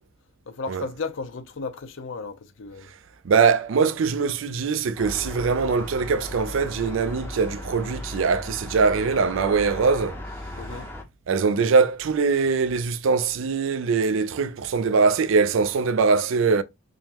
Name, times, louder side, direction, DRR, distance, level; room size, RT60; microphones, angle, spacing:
voice 1, 0.5-2.9 10.6-10.9, left 4 dB, 65° left, 0.6 m, -34 dB
voice 2, 3.2-10.2 11.3-16.6, right 5 dB, 65° right, 0.4 m, -22 dB
sound 1, 5.0-11.0, left 1 dB, 10° left, 0.6 m, -37 dB
3.8 x 3.0 x 2.9 m
head